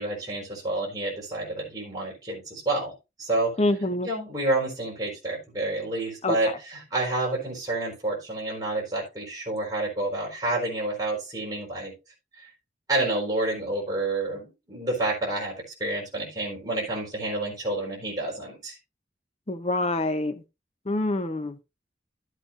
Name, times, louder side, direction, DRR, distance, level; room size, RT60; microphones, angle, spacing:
voice 1, 0.0-2.9 3.2-3.5 4.0-11.9 12.4-12.5 12.9-15.5 15.8-18.7, right 2 dB, 20° right, 4.3 m, -29 dB
voice 2, 3.6-4.1 6.2-6.5 19.5-20.4 20.9-21.6, left 2 dB, 35° left, 0.8 m, -26 dB
12.5 x 8.2 x 2.5 m
head